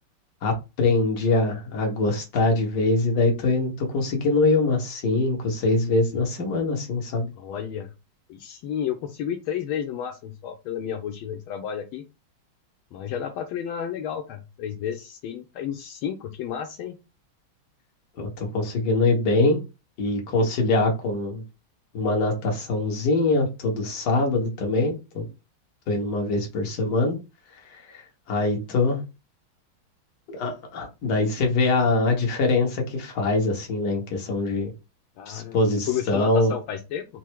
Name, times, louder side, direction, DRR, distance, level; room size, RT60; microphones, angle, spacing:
voice 1, 0.4-7.3 18.2-19.6 20.0-21.4 21.9-25.2 25.9-27.2 27.6-28.0 28.3-29.0 30.3-34.7 35.3-36.5, left 2 dB, 60° left, 1.7 m, -23 dB
voice 2, 7.4-7.9 8.3-12.0 12.9-17.0 35.2-35.6 35.9-37.1, left 9 dB, 80° left, 1.4 m, -31 dB
4.5 x 2.0 x 4.5 m
omnidirectional pair, 2.3 m